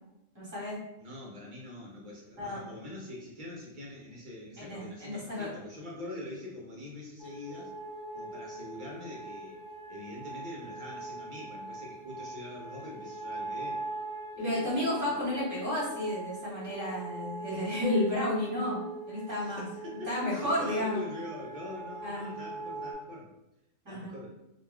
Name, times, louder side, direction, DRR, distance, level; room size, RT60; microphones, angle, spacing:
voice 1, 0.3-0.8 2.4-2.6 4.6-5.5 14.4-19.6 20.1-21.0 22.0-22.3 23.8-24.2, left 1 dB, 15° right, -7 dB, 1.0 m, -32 dB
voice 2, 1.0-7.7 8.1-9.6 9.9-13.8 14.3-15.2 19.3-23.3 23.9-24.3, left 1 dB, 55° right, -3 dB, 0.6 m, -44 dB
sound 1, 7.2-22.9, right 2 dB, 70° left, 0.9 m, -41 dB
2.3 x 2.3 x 3.3 m, 0.91 s
omnidirectional pair, 1.3 m